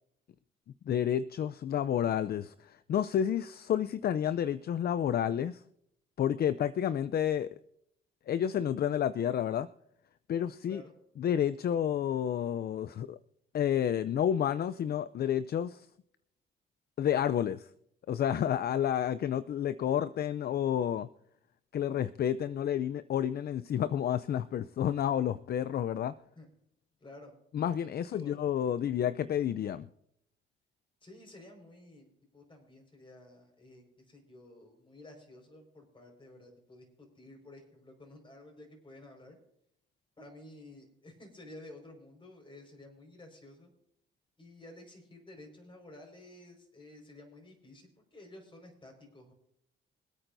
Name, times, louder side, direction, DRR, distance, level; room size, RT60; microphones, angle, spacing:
voice 1, 0.9-5.6 6.2-7.6 8.3-9.7 10.3-10.8 11.2-13.2 13.5-15.9 17.0-17.7 18.1-21.1 21.7-26.1 27.5-29.9, left 9 dB, 55° left, 0.5 m, -30 dB
voice 2, 27.0-27.3 28.0-28.4 31.0-32.1 32.3-39.4 40.2-43.7 44.4-49.3, left 1 dB, 25° left, 5.1 m, -52 dB
25.5 x 8.9 x 2.7 m
cardioid pair, 90°, 20 cm